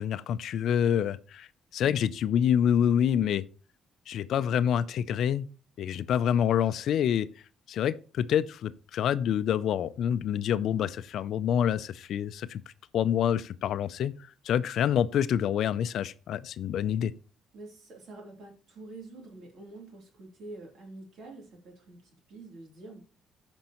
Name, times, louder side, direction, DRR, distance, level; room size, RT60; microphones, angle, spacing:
voice 1, 0.0-3.4 4.1-5.5 5.8-7.3 7.7-12.6 12.9-14.1 14.4-17.1, left 9 dB, 65° left, 0.4 m, -27 dB
voice 2, 1.8-2.1 17.5-23.0, right 2 dB, 65° right, 3.1 m, -47 dB
14.0 x 5.3 x 3.0 m
cardioid pair, 105°, 0 cm